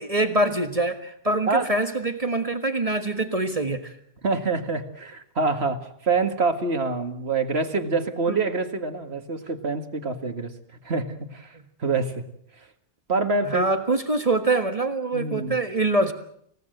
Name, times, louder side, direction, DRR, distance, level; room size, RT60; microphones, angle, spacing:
voice 1, 0.0-4.0 8.3-8.4 13.4-16.1, right 2 dB, 35° right, 7 dB, 1.7 m, -24 dB
voice 2, 4.2-10.5 10.8-12.2 12.6-12.7 13.1-13.7 15.1-15.6, right 3 dB, 85° right, 7 dB, 2.2 m, -26 dB
29.0 x 17.0 x 7.9 m, 0.68 s
omnidirectional pair, 1.0 m